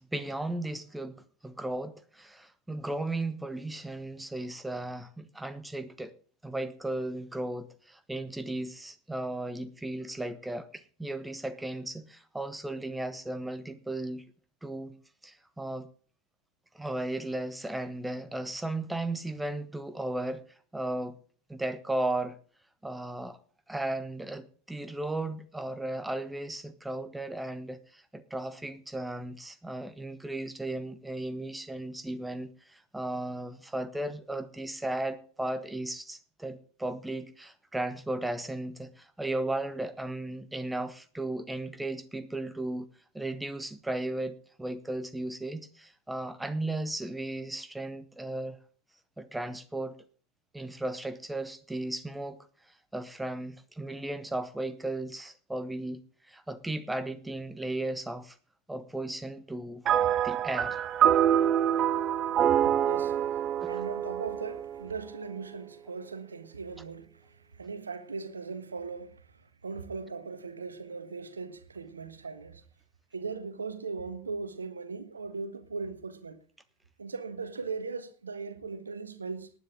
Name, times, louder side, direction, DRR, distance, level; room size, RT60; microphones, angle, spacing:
voice 1, 0.0-6.1 6.4-14.2 14.6-15.0 15.2-15.9 16.7-20.4 20.7-21.2 21.5-22.4 22.8-23.4 23.7-42.9 43.1-48.6 49.2-49.9 50.5-52.5 52.9-56.0 56.3-58.4 58.7-59.9 60.2-60.8 63.6-63.7, right 1 dB, 5° right, 1.2 m, -35 dB
sound 1, 59.9-65.4, right 10 dB, 30° right, 0.6 m, -26 dB
voice 2, 62.8-69.2 69.6-72.6 73.1-76.4 77.0-79.5, right 4 dB, 75° right, 1.4 m, -39 dB
18.5 x 10.0 x 3.8 m
figure-of-eight pair, 85°, 0 cm